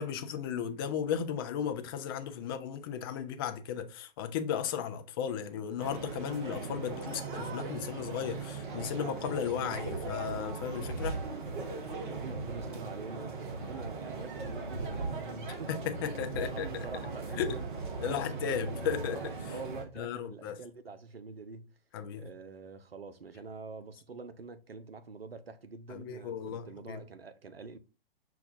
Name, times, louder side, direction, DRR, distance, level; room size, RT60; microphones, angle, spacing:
voice 1, 0.0-11.2 15.7-16.9 17.3-17.6 18.0-19.5 20.0-20.6 21.9-22.3 25.9-27.0, left 8 dB, 25° left, 0.4 m, -35 dB
sound 1, 5.8-19.8, right 3 dB, 60° right, 1.0 m, -38 dB
voice 2, 12.1-15.9 16.3-17.7 18.0-19.0 19.5-21.7 22.2-27.8, right 4 dB, 85° right, 0.5 m, -46 dB
5.7 x 2.2 x 2.6 m
figure-of-eight pair, 110°, 29 cm